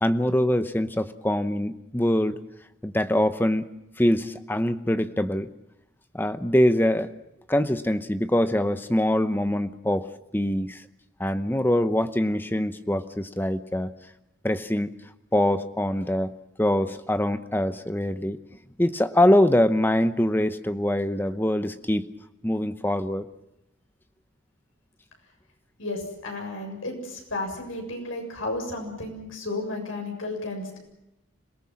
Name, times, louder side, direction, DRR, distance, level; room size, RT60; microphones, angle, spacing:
voice 1, 0.0-2.4 2.8-3.7 4.0-5.5 6.1-7.1 7.5-10.1 10.3-10.8 11.2-13.9 14.4-14.9 15.3-16.3 16.6-18.4 18.8-22.1 22.4-23.2, left 1 dB, 10° left, 11 dB, 0.8 m, -23 dB
voice 2, 25.8-30.8, left 2 dB, 85° left, 2 dB, 7.2 m, -33 dB
26.5 x 18.5 x 7.6 m, 0.89 s
head